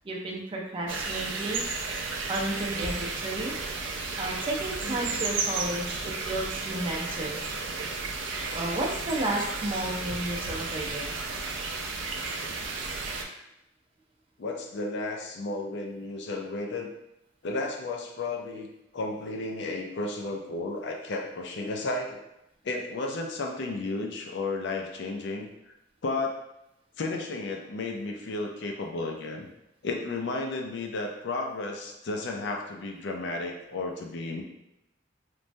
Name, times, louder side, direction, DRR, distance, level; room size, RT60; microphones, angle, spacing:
voice 1, 0.0-1.6 2.0-3.5 4.2-7.4 8.5-11.1, right 1 dB, 30° right, -2 dB, 0.5 m, -32 dB
sound 1, 0.9-13.3, right 4 dB, 80° right, 0.4 m, -33 dB
voice 2, 4.8-5.2 14.4-16.9 17.4-18.7 18.9-22.2 22.6-25.5 26.0-26.4 27.0-29.5 29.8-34.4, left 2 dB, 65° left, 2 dB, 0.4 m, -33 dB
3.1 x 2.1 x 2.5 m, 0.86 s
head